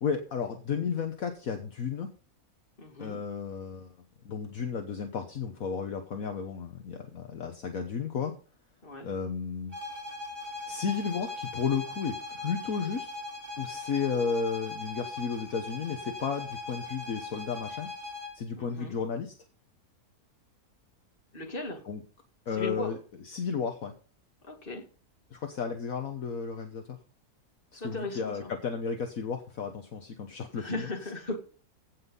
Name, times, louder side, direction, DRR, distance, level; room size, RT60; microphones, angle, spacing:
voice 1, 0.0-2.1 3.0-3.9 4.2-8.3 9.0-9.7 10.7-13.1 13.6-17.9 18.3-19.3 21.8-22.0 22.5-23.9 25.3-27.0 27.7-31.1, left 6 dB, 65° left, 5 dB, 1.6 m, -33 dB
voice 2, 2.8-3.2 8.8-9.1 18.6-19.0 21.3-21.8 22.6-22.9 24.5-24.8 27.8-28.5 30.5-31.4, left 2 dB, 35° left, 2 dB, 2.6 m, -37 dB
sound 1, 9.7-18.4, left 3 dB, 15° right, 3.5 m, -40 dB
16.0 x 6.0 x 5.5 m, 0.38 s
omnidirectional pair, 1.6 m